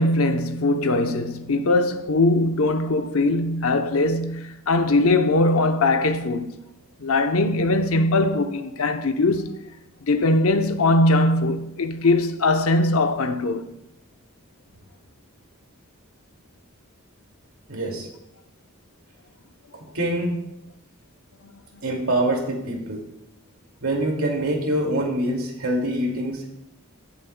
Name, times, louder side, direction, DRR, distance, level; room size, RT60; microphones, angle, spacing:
voice 1, 0.0-6.6 7.0-9.6 10.1-13.6, left 2 dB, 75° left, 0.8 m, -21 dB
voice 2, 17.7-18.1 19.7-20.4 21.8-23.0 23.8-26.4, right 1 dB, 80° right, 2.4 m, -25 dB
18.5 x 7.2 x 2.3 m
head